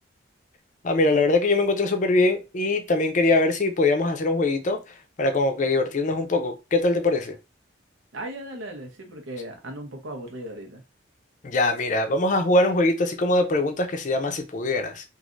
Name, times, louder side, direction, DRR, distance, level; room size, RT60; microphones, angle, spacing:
voice 1, 0.8-4.8 5.2-7.4 11.4-15.0, left 2 dB, 40° left, 0.5 m, -22 dB
voice 2, 8.1-10.8, right 1 dB, 90° right, 0.9 m, -37 dB
3.1 x 2.5 x 2.5 m
head